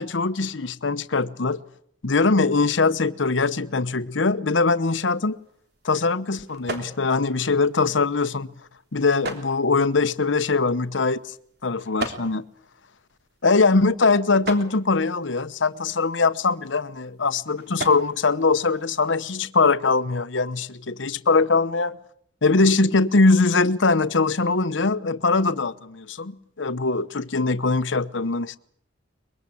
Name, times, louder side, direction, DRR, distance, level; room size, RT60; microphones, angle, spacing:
voice 1, 0.0-1.6 2.0-5.4 5.8-8.5 8.9-11.3 11.6-12.4 13.4-22.0 22.4-28.6, left 3 dB, 80° left, 1.0 m, -22 dB
sound 1, 5.0-19.4, right 2 dB, 55° right, 3.3 m, -41 dB
23.5 x 22.5 x 8.5 m
head